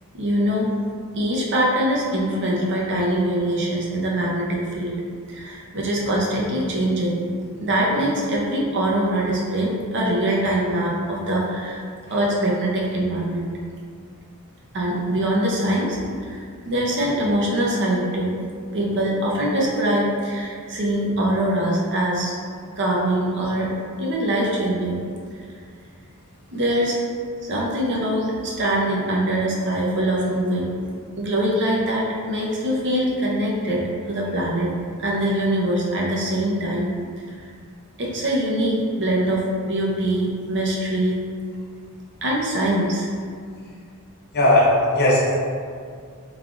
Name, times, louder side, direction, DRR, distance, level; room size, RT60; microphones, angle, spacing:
voice 1, 0.1-0.7 1.2-5.0 5.3-7.2 7.6-11.8 12.1-13.5 14.7-16.4 16.7-18.3 18.7-22.3 22.8-23.7 24.0-25.0 26.5-27.0 27.4-30.7 31.2-34.7 35.0-36.9 37.3-37.5 38.0-41.2 42.2-43.1, right 1 dB, 55° right, -4 dB, 0.7 m, -23 dB
voice 2, 44.3-45.3, left 1 dB, 45° left, -5 dB, 0.8 m, -17 dB
3.2 x 2.3 x 3.8 m, 2.1 s
head